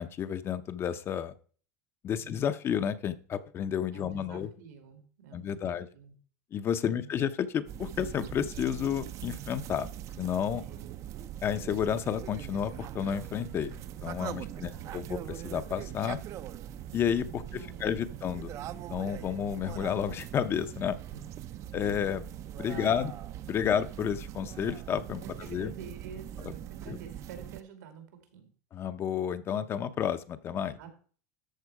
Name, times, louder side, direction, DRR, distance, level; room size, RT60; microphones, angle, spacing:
voice 1, 0.0-1.3 2.0-4.5 5.3-5.9 6.5-9.9 10.2-10.6 11.4-16.2 16.9-18.5 18.9-21.0 21.7-22.2 22.6-23.1 23.5-25.2 25.5-25.7 26.9-27.0 28.7-30.8, left 8 dB, 25° left, 12 dB, 0.6 m, -31 dB
voice 2, 2.2-2.5 3.9-6.1 6.8-7.2 10.5-10.9 14.3-15.1 17.2-18.1 21.1-21.3 22.6-23.3 25.2-28.0 28.3-28.5 30.8-31.0, right 7 dB, 85° right, 6 dB, 2.6 m, -49 dB
sound 1, 7.7-27.6, right 11 dB, 35° right, 0.5 m, -41 dB
13.0 x 4.4 x 4.8 m, 0.42 s
supercardioid pair, 140°, 9 cm